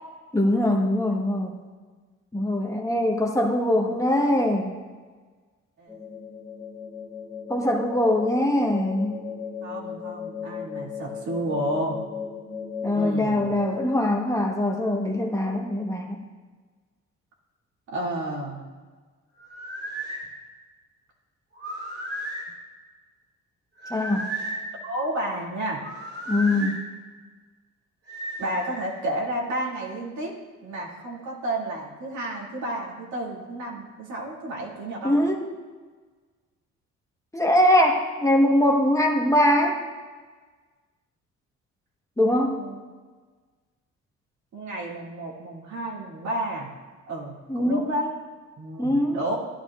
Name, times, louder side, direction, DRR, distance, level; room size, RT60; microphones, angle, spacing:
voice 1, 0.3-1.6 2.3-4.7 7.5-9.2 12.8-16.2 23.9-24.3 26.3-26.8 35.0-35.5 37.3-39.8 42.2-42.6 47.5-47.8 48.8-49.2, left 1 dB, 10° left, 1 dB, 1.1 m, -22 dB
sound 1, 5.9-14.0, left 6 dB, 15° right, 2.0 m, -37 dB
voice 2, 9.6-12.0 12.9-13.5 17.9-18.6 24.8-25.8 28.4-30.4 30.6-35.2 42.4-42.8 44.5-46.7 47.1-48.1 48.6-49.4, right 1 dB, 70° right, -3 dB, 2.3 m, -31 dB
sound 2, 19.4-20.2 21.6-22.5 23.8-24.7 25.8-26.8 28.1-28.9, right 1 dB, 50° right, 2.8 m, -34 dB
12.5 x 10.5 x 2.4 m, 1.4 s
cardioid pair, 90°, 30 cm